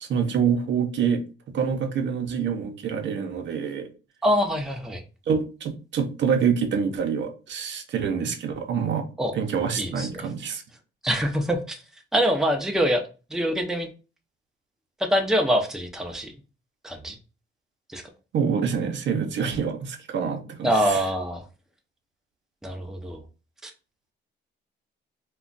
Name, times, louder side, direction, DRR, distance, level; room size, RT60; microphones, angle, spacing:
voice 1, 0.0-1.2 1.5-3.9 5.3-9.0 9.3-10.6 18.3-21.0, right 6 dB, 65° right, 0.6 m, -26 dB
voice 2, 4.2-5.0 9.2-9.3 9.8-10.3 11.0-11.8 12.1-13.0 13.3-13.9 15.0-16.3 16.8-17.2 17.9-18.0 20.6-21.5 22.6-23.2 23.6-23.7, equal, ahead, 0.6 m, -24 dB
2.4 x 2.2 x 3.8 m
cardioid pair, 90°, 20 cm